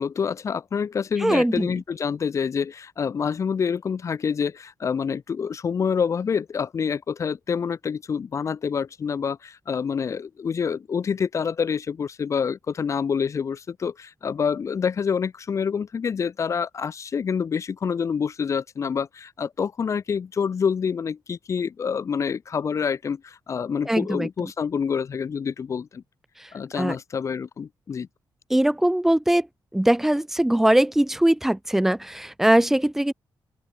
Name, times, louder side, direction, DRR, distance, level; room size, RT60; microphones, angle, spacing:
voice 1, 0.0-26.0 26.5-28.1, left 6 dB, 40° left, 0.9 m, -27 dB
voice 2, 1.2-1.7 23.9-24.5 26.8-27.0 28.5-29.5 29.7-33.1, right 1 dB, 5° right, 0.5 m, -21 dB
open air
wide cardioid pair, 165°, 8 cm